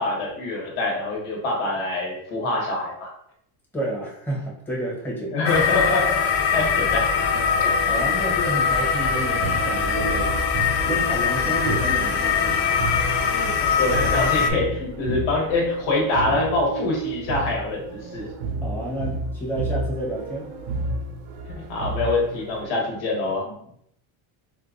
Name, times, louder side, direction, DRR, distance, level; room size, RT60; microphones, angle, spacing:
voice 1, 0.0-3.1 5.3-6.2 6.5-7.1 7.6-7.7 13.3-13.5 13.8-18.3 21.6-23.4, left 2 dB, 85° left, -1 dB, 1.3 m, -25 dB
voice 2, 3.7-5.5 7.9-10.4 10.9-12.6 18.6-20.5 23.4-23.5, right 1 dB, 5° left, -4 dB, 0.8 m, -30 dB
sound 1, 5.5-14.5, left 6 dB, 45° left, 0.5 m, -22 dB
sound 2, 9.0-22.6, right 2 dB, 70° right, 0.8 m, -31 dB
4.2 x 2.3 x 2.4 m, 0.70 s
cardioid pair, 130°, 49 cm